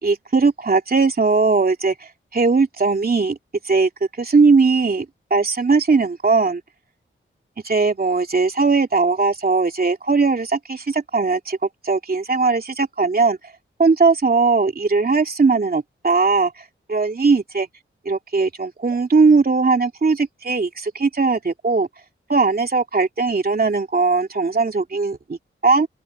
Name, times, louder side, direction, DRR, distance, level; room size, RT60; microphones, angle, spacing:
voice 1, 0.0-1.9 2.3-3.4 3.6-3.9 4.2-6.6 7.6-11.6 11.8-13.4 13.8-16.5 16.9-17.7 18.0-21.9 22.3-25.9, right 4 dB, 45° right, 2.9 m, -19 dB
open air
wide cardioid pair, 75°, 21 cm